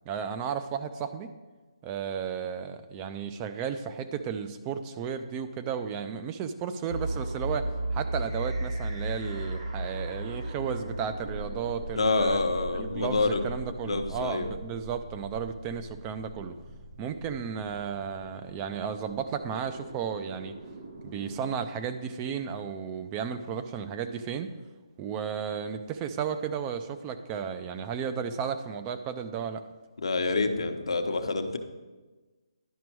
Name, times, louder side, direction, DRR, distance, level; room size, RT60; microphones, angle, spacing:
voice 1, 0.1-1.3 1.8-12.4 12.7-16.6 17.0-20.6 21.0-24.5 25.0-29.6, right 7 dB, 20° right, 9 dB, 0.4 m, -34 dB
sound 1, 6.9-21.5, right 1 dB, 85° right, 1.7 m, -37 dB
voice 2, 11.9-14.5 30.0-31.6, left 3 dB, 75° left, 6 dB, 0.9 m, -27 dB
11.0 x 5.1 x 4.6 m, 1.3 s
hypercardioid pair, 155°, 3 cm